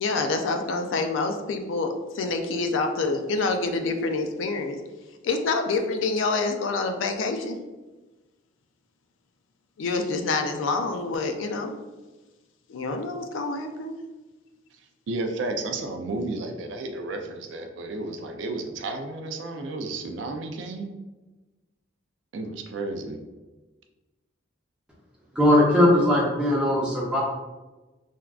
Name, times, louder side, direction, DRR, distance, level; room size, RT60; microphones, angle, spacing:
voice 1, 0.0-4.8 5.2-7.6 9.8-11.7 12.7-13.9, left 3 dB, 80° left, 6 dB, 0.3 m, -27 dB
voice 2, 15.1-20.9 22.3-23.2, right 2 dB, 70° right, 5 dB, 0.3 m, -32 dB
voice 3, 25.3-27.2, left 1 dB, 5° right, -5 dB, 0.6 m, -19 dB
3.4 x 2.3 x 2.3 m, 1.2 s
head